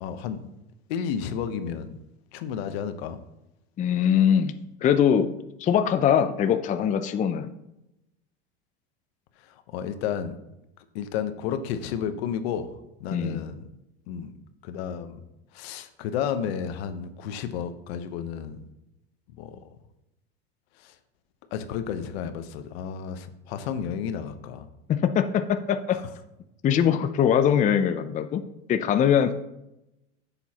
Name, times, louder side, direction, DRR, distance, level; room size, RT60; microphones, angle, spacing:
voice 1, 0.0-0.5 0.9-2.0 2.3-3.2 9.5-10.3 10.9-12.7 13.0-13.6 14.1-14.4 14.6-15.2 15.5-18.6 19.3-19.6 20.8-20.9 21.5-24.7 25.9-26.0, left 8 dB, 75° left, 9 dB, 1.0 m, -32 dB
voice 2, 3.8-4.5 4.8-5.3 5.6-7.5 13.1-13.4 24.9-26.0 26.6-28.4 28.7-29.3, left 8 dB, 25° left, 9 dB, 0.5 m, -22 dB
10.0 x 7.1 x 2.9 m, 0.89 s
supercardioid pair, 120°, 31 cm